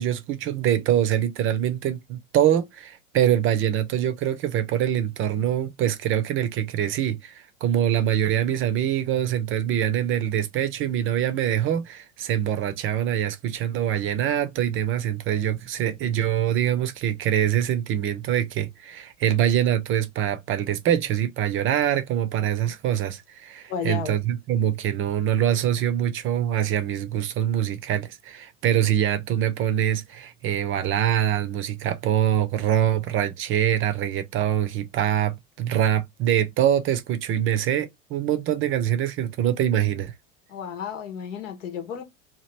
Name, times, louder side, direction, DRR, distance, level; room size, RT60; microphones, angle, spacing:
voice 1, 0.0-40.1, right 10 dB, 35° right, 0.5 m, -24 dB
voice 2, 23.7-24.2 40.5-42.0, left 7 dB, 75° left, 1.0 m, -32 dB
2.9 x 2.4 x 3.1 m
hypercardioid pair, 100°, 38 cm